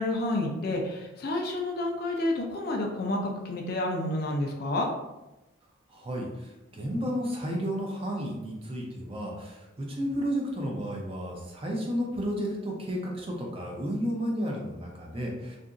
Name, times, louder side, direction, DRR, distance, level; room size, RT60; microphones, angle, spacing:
voice 1, 0.0-4.9, left 1 dB, 45° left, 2 dB, 0.4 m, -29 dB
voice 2, 5.9-15.6, equal, 25° right, -1 dB, 0.5 m, -32 dB
2.8 x 2.5 x 2.4 m, 0.99 s
head